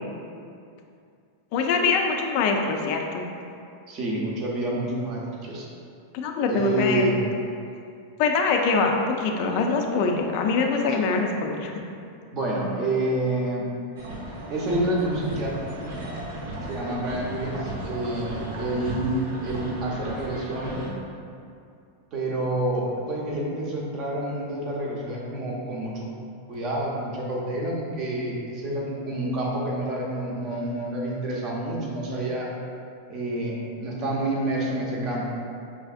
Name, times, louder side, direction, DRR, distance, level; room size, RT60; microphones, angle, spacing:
voice 1, 1.5-3.2 6.1-7.1 8.2-11.7 16.9-17.2, left 4 dB, 45° left, 3 dB, 0.4 m, -24 dB
voice 2, 3.9-5.7 6.5-7.2 12.3-13.7 14.5-15.7 16.7-20.8 22.1-26.1 26.5-32.5 33.1-35.4, right 1 dB, 30° right, -3 dB, 0.7 m, -28 dB
sound 1, 14.0-20.9, right 1 dB, 65° right, 0.8 m, -35 dB
5.6 x 2.5 x 2.4 m, 2.5 s
supercardioid pair, 165°, 0 cm